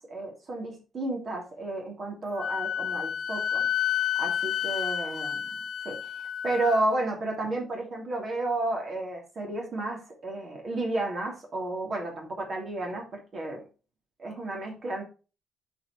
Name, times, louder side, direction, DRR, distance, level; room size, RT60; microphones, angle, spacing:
voice 1, 0.0-3.7 4.2-5.6 5.8-6.0 6.4-13.6 14.2-15.0, right 2 dB, 45° right, 0 dB, 2.9 m, -32 dB
Wind instrument woodwind instrument, 2.4-6.8, left 9 dB, 65° left, 0.5 m, -30 dB
8.5 x 4.7 x 4.2 m, 0.33 s
cardioid pair, 90°, 0 cm